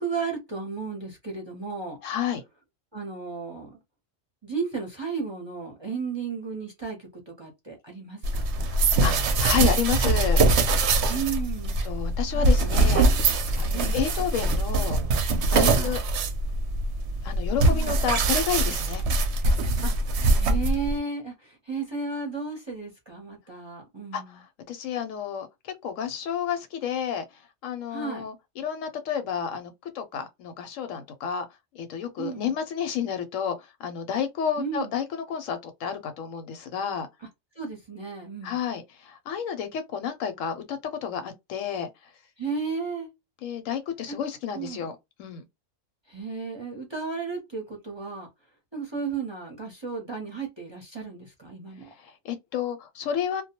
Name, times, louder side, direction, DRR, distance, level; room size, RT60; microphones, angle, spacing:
voice 1, 0.0-2.0 2.9-3.8 4.4-8.5 11.1-11.8 12.3-12.6 13.7-14.0 15.7-16.0 17.6-18.0 19.8-19.9 20.4-24.4 27.9-28.3 32.2-32.5 34.6-34.9 37.6-38.6 42.4-43.1 44.1-44.2 44.5-44.9 46.1-48.3 48.7-51.9, right 5 dB, 30° right, 0.6 m, -34 dB
voice 2, 2.0-2.4 9.0-10.4 11.1-11.2 11.8-13.0 13.6-15.0 15.5-16.0 17.2-19.0 24.1-27.2 27.6-31.4 31.7-37.1 38.4-41.9 43.4-45.4 52.0-53.4, left 8 dB, 90° left, 1.0 m, -30 dB
sound 1, 8.2-21.0, right 2 dB, 65° right, 0.7 m, -23 dB
2.2 x 2.1 x 2.8 m
omnidirectional pair, 1.3 m